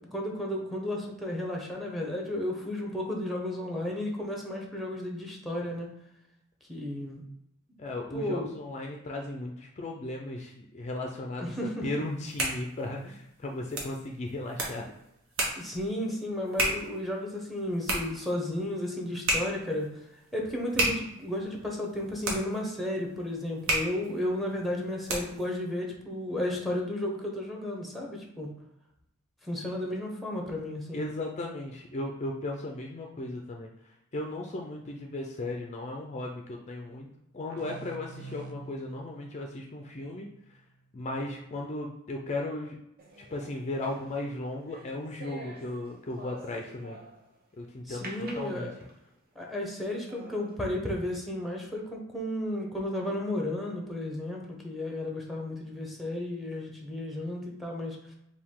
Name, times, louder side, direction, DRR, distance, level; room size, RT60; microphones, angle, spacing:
voice 1, 0.1-5.9 6.7-7.2 8.1-8.5 11.4-12.0 15.6-19.9 20.3-28.5 29.4-31.0 47.9-48.7 49.4-58.0, left 1 dB, ahead, -1 dB, 0.8 m, -33 dB
voice 2, 7.8-14.9 30.9-33.7 34.1-37.1 37.3-40.3 40.9-42.8 43.2-47.0 47.6-48.1 48.3-48.7, left 2 dB, 35° left, 0 dB, 0.4 m, -36 dB
sound 1, 12.0-25.5, right 1 dB, 65° right, 1.1 m, -34 dB
sound 2, 37.5-40.9, right 4 dB, 80° right, 0.5 m, -47 dB
sound 3, 43.0-47.4 48.0-49.1 49.6-49.7 50.1-50.5, right 2 dB, 45° right, 0.8 m, -48 dB
4.6 x 2.3 x 3.6 m, 0.82 s
head